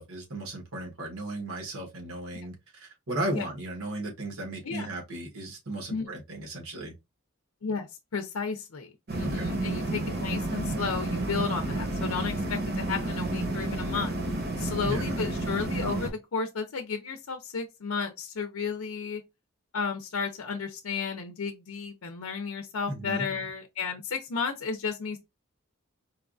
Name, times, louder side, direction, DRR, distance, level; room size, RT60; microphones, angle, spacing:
voice 1, 0.0-6.9 9.2-9.5 14.8-15.2 22.9-23.3, right 1 dB, 85° right, 1.2 m, -35 dB
voice 2, 8.1-8.9 9.1-14.2 14.6-19.2 19.7-25.2, left 5 dB, 90° left, 0.5 m, -33 dB
sound 1, 9.1-16.1, right 2 dB, 45° right, 0.8 m, -31 dB
4.5 x 2.3 x 2.5 m
head